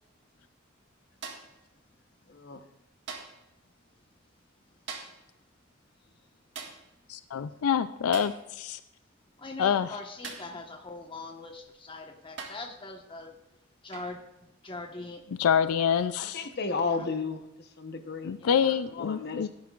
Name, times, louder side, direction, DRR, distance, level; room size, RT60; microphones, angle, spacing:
sound 1, 1.2-1.6 3.1-3.5 4.9-5.3 6.6-6.9 8.1-8.4 10.2-10.6 11.7-11.8 12.4-12.7 13.9-14.2 15.8-16.0, right 5 dB, 55° right, 1.7 m, -42 dB
voice 1, 2.3-2.6 16.2-17.4 17.8-18.3 18.9-19.5, left 4 dB, 50° left, 7 dB, 1.0 m, -33 dB
voice 2, 7.1-8.8 9.6-9.9 15.4-16.5 18.2-19.5, left 8 dB, 85° left, 13 dB, 0.4 m, -26 dB
voice 3, 9.4-13.4 13.8-15.2 15.7-16.2 16.8-17.1 18.4-18.8, left 2 dB, 25° left, 3 dB, 1.2 m, -42 dB
17.5 x 10.5 x 2.4 m, 0.89 s
head